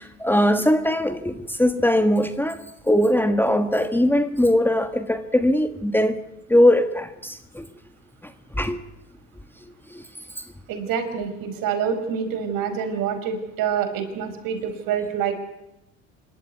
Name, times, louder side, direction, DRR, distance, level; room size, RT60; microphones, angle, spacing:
voice 1, 0.0-6.2 6.5-7.7 8.2-8.3 8.6-8.8 9.9-10.0 10.4-10.5, left 1 dB, 5° left, 1.5 m, -21 dB
voice 2, 10.7-15.3, right 7 dB, 60° right, 4.9 m, -26 dB
25.5 x 13.0 x 9.5 m
supercardioid pair, 90°, 38 cm